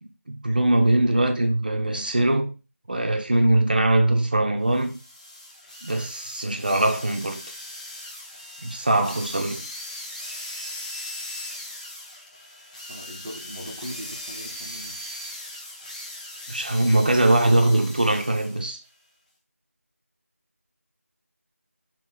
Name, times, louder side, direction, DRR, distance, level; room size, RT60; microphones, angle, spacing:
voice 1, 0.0-2.5 2.9-5.0 5.8-7.4 8.6-9.7 16.5-18.8, right 1 dB, 35° right, 0.8 m, -22 dB
sound 1, 4.7-18.7, left 1 dB, 25° left, 1.0 m, -39 dB
voice 2, 12.9-15.2, equal, 5° right, 0.8 m, -40 dB
6.0 x 3.2 x 4.9 m
figure-of-eight pair, 170°, 8 cm